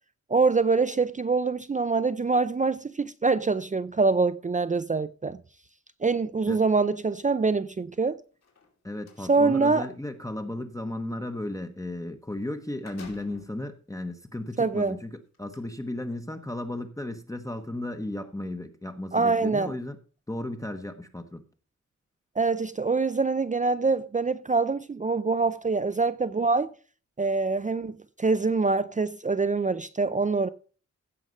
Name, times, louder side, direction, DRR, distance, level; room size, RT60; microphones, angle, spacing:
voice 1, 0.3-5.4 6.0-8.2 9.2-9.9 14.6-15.0 19.1-19.7 22.4-26.7 27.2-30.5, right 4 dB, 25° right, 0.5 m, -25 dB
sound 1, 8.3-9.3 12.1-12.2 12.5-13.6 14.3-14.4 15.3-15.6, left 4 dB, 60° left, 3.0 m, -50 dB
voice 2, 8.8-20.0 20.3-21.4, left 1 dB, 10° left, 1.0 m, -35 dB
15.5 x 6.5 x 5.4 m
wide cardioid pair, 125°, 29 cm